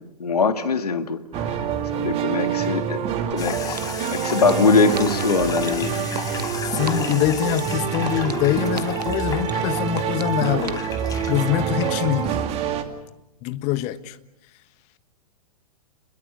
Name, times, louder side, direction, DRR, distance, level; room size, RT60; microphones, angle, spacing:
voice 1, 0.2-1.2 1.9-3.0 3.3-3.8 4.1-5.9, left 4 dB, 70° left, 1.9 m, -21 dB
sound 1, 1.3-12.8, right 8 dB, 30° right, 2.3 m, -26 dB
sound 2, 3.3-3.4 3.8-4.5 5.0-5.2 5.7-6.4 6.9-7.1 7.6-8.3 8.8-9.0 9.5-10.2 10.7-10.8, right 4 dB, 85° right, 1.3 m, -33 dB
sound 3, 3.4-12.4, left 6 dB, 20° left, 2.2 m, -35 dB
voice 2, 6.6-10.8 11.3-12.4 13.4-14.2, left 12 dB, 35° left, 1.4 m, -24 dB
29.5 x 21.5 x 6.6 m
figure-of-eight pair, 105°, 20 cm